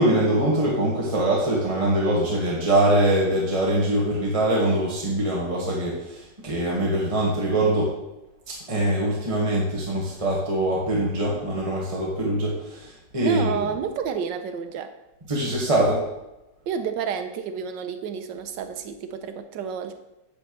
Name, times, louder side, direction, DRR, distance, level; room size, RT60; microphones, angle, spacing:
voice 1, 0.0-7.9 8.5-13.6 15.3-16.1, right 1 dB, 20° right, -4 dB, 1.5 m, -23 dB
voice 2, 13.2-14.9 16.7-19.9, right 7 dB, 90° right, 8 dB, 1.4 m, -30 dB
8.7 x 8.5 x 3.1 m, 0.95 s
omnidirectional pair, 1.9 m